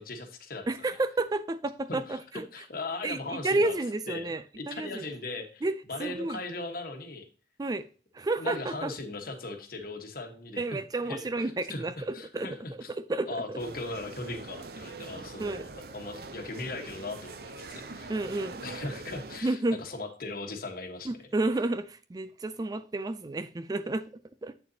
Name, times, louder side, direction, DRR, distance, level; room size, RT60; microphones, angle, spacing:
voice 1, 0.0-0.7 1.9-3.7 4.1-5.6 5.9-7.2 8.4-10.8 11.1-11.8 12.1-12.9 13.3-18.1 18.6-21.1, left 2 dB, 55° left, 1.3 m, -38 dB
voice 2, 0.7-2.4 3.0-5.1 5.6-6.4 7.6-7.9 8.1-8.9 10.6-13.6 15.4-15.7 18.1-18.6 19.4-19.8 21.0-24.5, right 2 dB, 20° right, 0.3 m, -31 dB
sound 1, 13.6-19.4, right 3 dB, 55° right, 0.7 m, -43 dB
8.5 x 6.7 x 2.8 m
head